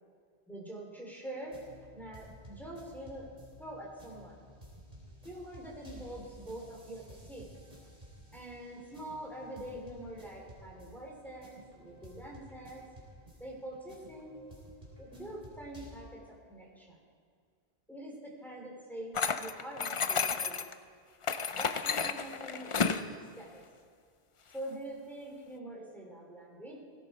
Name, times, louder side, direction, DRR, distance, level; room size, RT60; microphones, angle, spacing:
voice 1, 0.5-1.6 1.9-3.3 3.6-4.4 5.2-7.5 8.3-12.8 13.4-14.4 15.0-17.0 17.9-20.6 21.5-23.6 24.5-26.8, right 1 dB, ahead, -3 dB, 3.4 m, -45 dB
sound 1, 1.4-15.9, equal, 40° right, 3.7 m, -54 dB
sound 2, 19.1-20.7 21.2-23.0, left 5 dB, 40° left, 0.5 m, -31 dB
19.0 x 16.5 x 4.4 m, 2.1 s
omnidirectional pair, 1.1 m